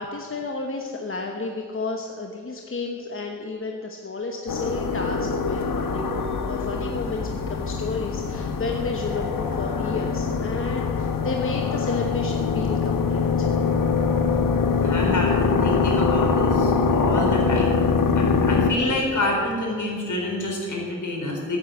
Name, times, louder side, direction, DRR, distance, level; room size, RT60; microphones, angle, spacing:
voice 1, 0.0-13.5, left 3 dB, 40° left, 2 dB, 1.1 m, -32 dB
sound 1, 4.5-18.7, left 5 dB, 85° left, 1.1 m, -23 dB
voice 2, 14.7-17.7 18.1-21.6, left 2 dB, 65° left, -1 dB, 4.3 m, -27 dB
15.0 x 9.5 x 7.9 m, 2.3 s
wide cardioid pair, 155°, 33 cm